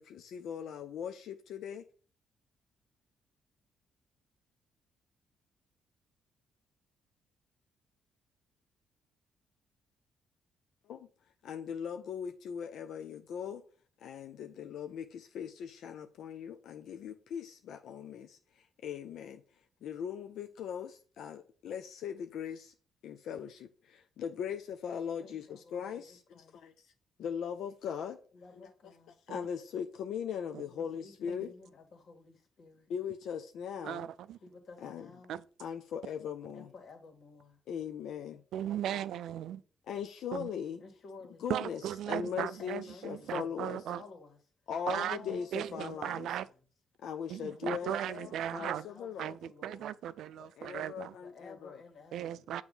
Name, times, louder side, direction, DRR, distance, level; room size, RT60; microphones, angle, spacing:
voice 1, 0.0-1.8 10.8-11.1 11.4-13.6 14.0-22.7 23.0-26.9 27.2-28.2 28.5-28.7 29.1-31.5 32.9-34.1 34.8-35.1 35.6-36.7 37.7-38.4 39.9-40.8 41.4-43.8 44.7-46.4 47.0-49.4 50.4-51.8, left 8 dB, 75° left, 0.5 m, -40 dB
voice 2, 25.2-26.6 28.3-29.2 30.7-32.9 34.4-35.4 36.5-37.6 38.6-39.6 40.8-41.5 42.1-43.3 43.9-44.4 45.0-46.5 47.5-50.0 51.2-52.4, left 4 dB, 55° left, 1.9 m, -54 dB
voice 3, 33.8-34.4 35.3-35.4 38.5-39.6 40.3-40.5 41.5-44.0 44.9-46.5 47.3-48.9 49.2-51.1 52.1-52.6, right 10 dB, 75° right, 0.3 m, -37 dB
7.1 x 3.1 x 5.5 m
cardioid pair, 90°, 0 cm